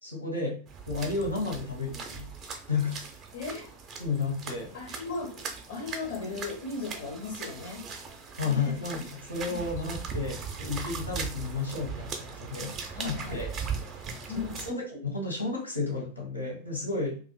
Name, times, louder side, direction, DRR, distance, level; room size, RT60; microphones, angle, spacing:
voice 1, 0.0-0.6 0.9-2.3 2.7-3.0 4.0-4.7 8.4-12.7 13.0-13.5 14.3-17.2, left 4 dB, 85° left, -1 dB, 1.1 m, -32 dB
sound 1, 0.7-14.7, right 5 dB, 30° right, 0.5 m, -39 dB
voice 2, 3.3-3.7 4.7-7.9 8.4-9.1 9.5-9.6 12.9-13.4 14.3-14.7, left 4 dB, 60° left, 0 dB, 0.5 m, -37 dB
2.5 x 2.5 x 2.2 m, 0.39 s
figure-of-eight pair, 90°, 0 cm